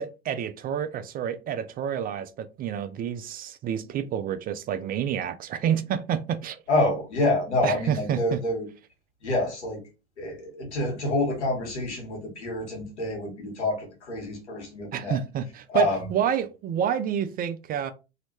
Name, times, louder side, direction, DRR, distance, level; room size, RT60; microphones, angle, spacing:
voice 1, 0.0-6.6 7.6-8.4 14.9-17.9, right 9 dB, 30° right, 0.4 m, -29 dB
voice 2, 6.7-8.7 9.2-9.8 10.2-15.2 15.7-16.1, left 2 dB, 90° left, 1.6 m, -27 dB
3.0 x 2.7 x 2.9 m
hypercardioid pair, 90°, 33 cm